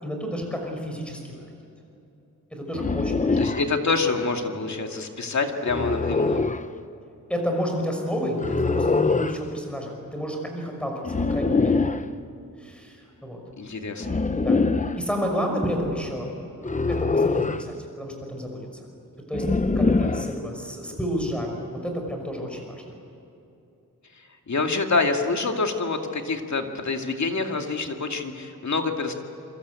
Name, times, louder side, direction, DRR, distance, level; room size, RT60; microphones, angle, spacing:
voice 1, 0.0-1.3 2.5-3.4 7.3-10.9 11.3-11.8 12.6-13.4 14.4-14.6 15.0-18.7 19.3-21.5 21.8-22.8, equal, 5° left, 2 dB, 5.7 m, -30 dB
sound 1, 2.7-3.7 5.7-6.6 8.4-9.4 11.0-12.1 14.0-15.0 16.6-17.7 19.3-20.3, left 3 dB, 25° left, 0.8 m, -23 dB
voice 2, 3.4-6.4 13.6-14.2 20.1-20.2 24.2-29.1, left 3 dB, 55° left, 4 dB, 2.4 m, -27 dB
27.5 x 25.5 x 8.4 m, 2.8 s
wide cardioid pair, 160°, 33 cm